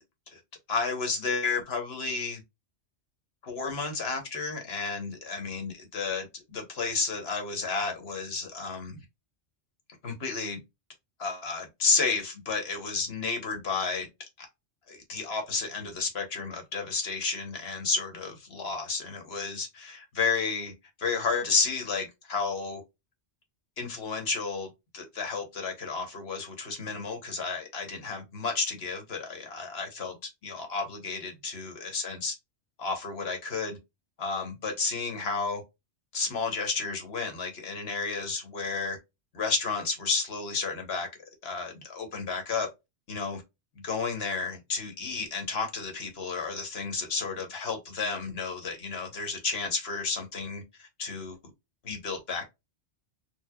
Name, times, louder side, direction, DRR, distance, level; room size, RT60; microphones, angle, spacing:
voice 1, 0.7-2.4 3.4-9.0 10.0-10.6 11.2-14.1 14.4-14.5 14.9-20.7 21.0-22.8 23.8-32.3 32.8-33.8 34.2-35.6 36.1-39.0 39.3-41.1 41.4-42.7 43.1-43.4 43.8-51.4 51.8-52.4, left 4 dB, 65° left, 1.4 m, -32 dB
4.6 x 2.7 x 2.3 m
omnidirectional pair, 1.1 m